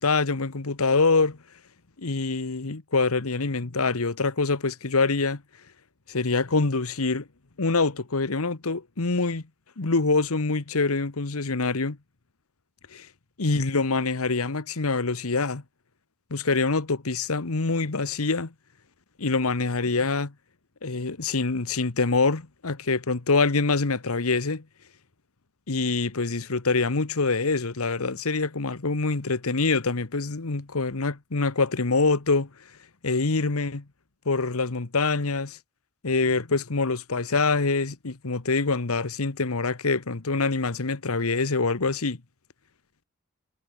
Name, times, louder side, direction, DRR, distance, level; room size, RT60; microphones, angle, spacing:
voice 1, 0.0-1.4 2.0-5.4 6.1-7.3 7.6-9.4 9.8-12.0 13.4-15.6 16.3-18.5 19.2-20.3 20.8-24.6 25.7-32.5 33.0-33.8 34.2-35.6 36.0-42.2, left 3 dB, 85° left, 1.3 m, -25 dB
head